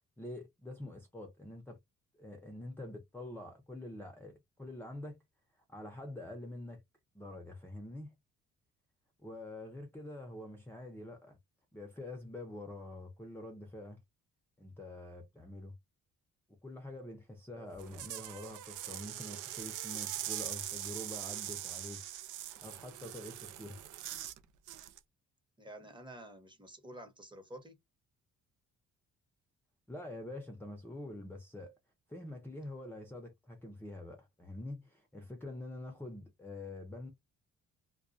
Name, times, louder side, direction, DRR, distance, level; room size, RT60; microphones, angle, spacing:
voice 1, 0.0-1.8 2.2-5.2 5.7-6.8 7.1-8.1 9.2-11.4 11.7-14.0 14.6-15.7 16.5-22.0 22.6-23.8 29.9-31.8 32.1-37.1, left 1 dB, 5° left, 0.6 m, -46 dB
sound 1, 17.7-24.4 24.7-25.0, right 13 dB, 80° right, 0.5 m, -42 dB
voice 2, 25.6-27.8, right 1 dB, 15° right, 0.9 m, -50 dB
2.2 x 2.2 x 2.5 m
cardioid pair, 90°, 30 cm